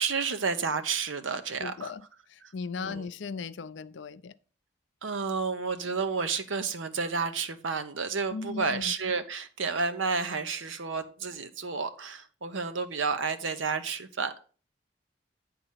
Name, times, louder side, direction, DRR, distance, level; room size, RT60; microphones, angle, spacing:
voice 1, 0.0-1.9 2.4-2.5 2.8-3.0 5.0-14.4, right 5 dB, 90° right, 1.0 m, -31 dB
voice 2, 1.6-2.0 2.3-4.3 8.3-8.9, left 5 dB, 70° left, 0.5 m, -37 dB
9.9 x 4.0 x 5.7 m
head